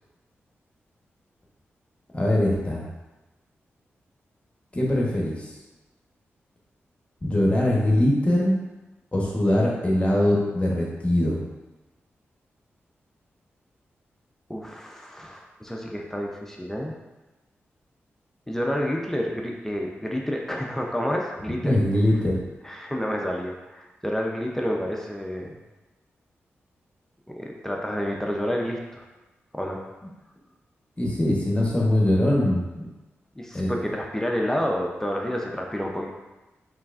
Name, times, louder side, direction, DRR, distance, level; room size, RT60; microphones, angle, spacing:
voice 1, 2.1-2.9 4.7-5.5 7.2-8.5 9.1-11.4 21.6-22.4 31.0-32.9 33.5-33.7, left 1 dB, 25° left, -4 dB, 1.0 m, -22 dB
voice 2, 14.5-16.9 18.5-21.7 22.6-25.6 27.4-29.0 29.5-29.8 33.4-36.1, equal, 10° left, 0 dB, 0.5 m, -29 dB
4.4 x 3.2 x 2.4 m, 1.1 s
cardioid pair, 55°, 5 cm